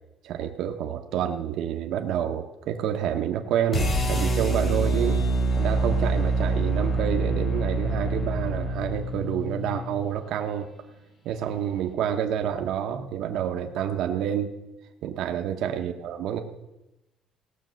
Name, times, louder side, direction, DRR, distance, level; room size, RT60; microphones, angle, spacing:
voice 1, 0.2-5.2 5.6-10.7 11.2-14.5 15.0-16.4, right 9 dB, 70° right, 4 dB, 0.9 m, -28 dB
sound 1, 3.7-9.9, right 2 dB, 35° left, 2.6 m, -25 dB
17.5 x 6.6 x 6.3 m, 0.96 s
cardioid pair, 140°, 0 cm